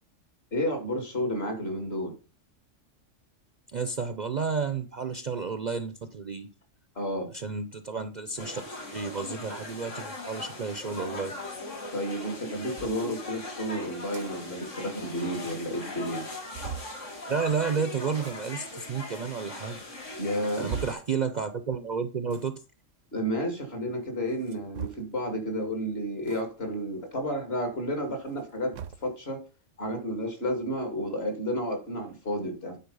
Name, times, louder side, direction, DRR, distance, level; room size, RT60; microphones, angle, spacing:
voice 1, 0.5-2.1 7.0-7.3 11.9-16.3 20.2-20.7 23.1-28.8 29.0-29.4 29.8-32.8, equal, 55° left, 2.5 m, -31 dB
voice 2, 3.7-6.5 7.3-8.6 8.9-11.3 17.3-19.8 20.6-22.6, right 5 dB, 45° right, 0.6 m, -31 dB
sound 1, 8.4-20.9, left 2 dB, 80° left, 2.5 m, -40 dB
sound 2, 12.8-13.0 13.9-14.3 14.6-14.7 15.0-15.1 15.6-15.7 16.1-17.0 18.1-18.4 19.2-19.3 20.0-21.1 22.2-22.5 24.3-25.2 26.2-26.4 26.8-26.9 28.2-29.1, right 7 dB, 90° right, 1.1 m, -40 dB
9.5 x 4.2 x 5.4 m
omnidirectional pair, 1.3 m